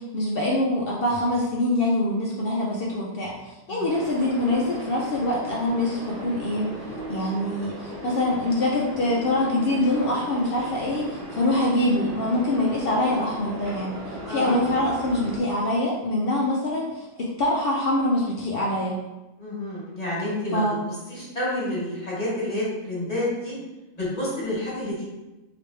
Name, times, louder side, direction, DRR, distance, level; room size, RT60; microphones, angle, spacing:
voice 1, 0.0-6.8 7.1-19.0 20.5-20.8, left 1 dB, 90° left, -4 dB, 0.5 m, -24 dB
sound 1, 3.9-15.4, right 1 dB, 40° right, 1.1 m, -37 dB
voice 2, 14.2-14.6 19.4-20.6 21.1-23.5 23.9-25.0, left 1 dB, 30° left, -7 dB, 1.2 m, -29 dB
3.3 x 2.9 x 3.2 m, 1.0 s
omnidirectional pair, 1.6 m